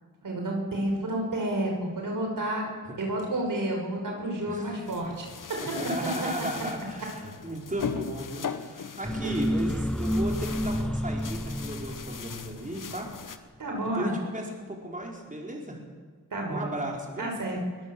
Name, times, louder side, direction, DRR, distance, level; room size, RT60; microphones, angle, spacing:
voice 1, 0.2-2.7 3.0-5.8 6.2-6.3 9.2-9.3 9.7-9.9 13.6-14.1 16.3-16.8 17.2-17.6, right 1 dB, 75° right, 1 dB, 5.4 m, -30 dB
sound 1, 4.9-13.4, left 6 dB, 70° left, 1.3 m, -39 dB
voice 2, 5.6-13.1 13.9-15.8 16.5-17.3, right 1 dB, 25° right, 0 dB, 5.1 m, -35 dB
sound 2, 9.0-13.0, equal, ahead, 0.7 m, -30 dB
23.0 x 17.5 x 7.3 m, 1.5 s
cardioid pair, 50°, 33 cm